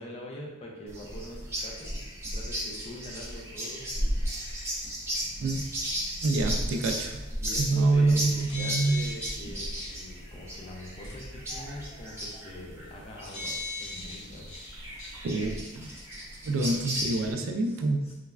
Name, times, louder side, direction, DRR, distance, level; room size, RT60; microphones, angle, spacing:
voice 1, 0.0-2.1 2.3-4.2 7.4-14.5 16.6-16.8 17.6-18.1, left 1 dB, 30° left, -2 dB, 0.5 m, -44 dB
sound 1, 0.9-17.3, equal, 15° right, 0.7 m, -35 dB
voice 2, 6.2-7.2 7.6-9.0 15.2-15.9 16.4-18.1, right 2 dB, 70° right, 4 dB, 0.3 m, -26 dB
sound 2, 8.3-9.4 9.8-9.9 11.0-11.1 13.3-14.7 15.0-15.1, left 3 dB, 75° left, 0.8 m, -37 dB
3.2 x 2.0 x 2.3 m, 1.0 s
head